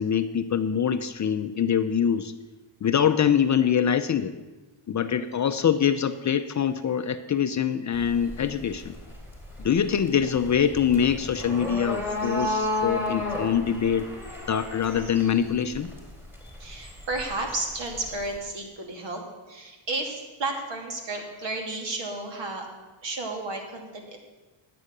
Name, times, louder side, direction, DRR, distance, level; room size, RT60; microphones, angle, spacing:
voice 1, 0.0-2.3 2.8-4.3 4.9-8.9 9.6-14.1 14.5-15.9, left 8 dB, 35° left, 10 dB, 0.6 m, -24 dB
voice 2, 5.2-5.6 9.9-10.3 16.6-22.7 23.0-24.2, right 2 dB, 60° right, 2 dB, 2.7 m, -33 dB
sound 1, 7.9-18.4, left 1 dB, 5° right, 3.6 m, -34 dB
11.0 x 8.5 x 6.6 m, 1.2 s
cardioid pair, 100°, 49 cm